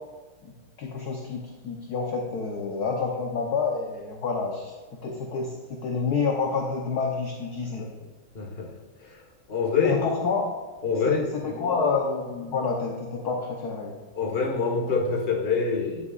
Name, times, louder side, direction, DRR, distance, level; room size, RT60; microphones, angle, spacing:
voice 1, 0.4-4.7 5.0-7.8 9.8-10.5 11.1-13.9, left 5 dB, 60° left, 0 dB, 1.2 m, -28 dB
voice 2, 8.3-8.8 9.5-10.0 10.8-11.9 14.2-16.1, left 5 dB, 30° left, -1 dB, 1.4 m, -26 dB
10.0 x 9.5 x 2.4 m, 1.3 s
omnidirectional pair, 2.3 m